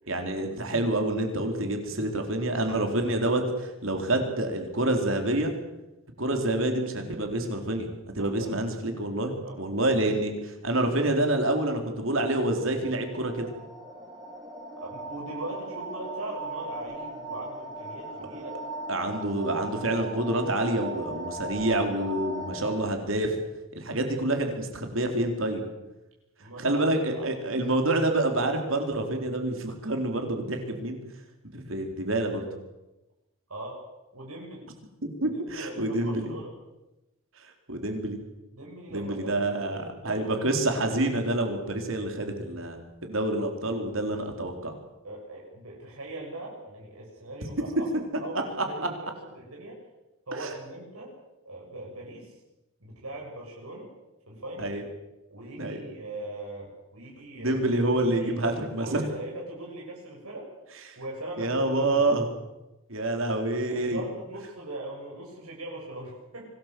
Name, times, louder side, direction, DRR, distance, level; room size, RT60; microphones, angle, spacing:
voice 1, 0.1-5.5 6.2-7.9 8.1-9.3 9.6-13.5 18.9-23.3 23.7-25.6 26.6-31.0 31.5-32.5 35.2-36.3 37.7-38.2 38.9-44.7 48.6-48.9 50.4-50.5 54.6-54.8 55.6-55.8 57.4-59.0 60.9-61.0 61.4-62.3 62.9-64.0, right 1 dB, 65° right, 4 dB, 4.2 m, -27 dB
voice 2, 8.2-8.8 9.4-9.6 14.8-18.5 26.4-26.8 27.1-27.3 33.5-33.8 34.1-34.7 35.2-36.5 38.5-40.8 45.0-47.9 48.2-49.8 50.3-51.1 51.4-52.4 52.8-53.9 54.3-54.7 55.3-57.6 58.0-60.5 61.0-62.1 63.7-66.5, right 1 dB, 90° right, -3 dB, 6.9 m, -40 dB
sound 1, 12.2-22.8, right 2 dB, 20° right, 3.8 m, -39 dB
25.0 x 18.5 x 7.8 m, 1.0 s
head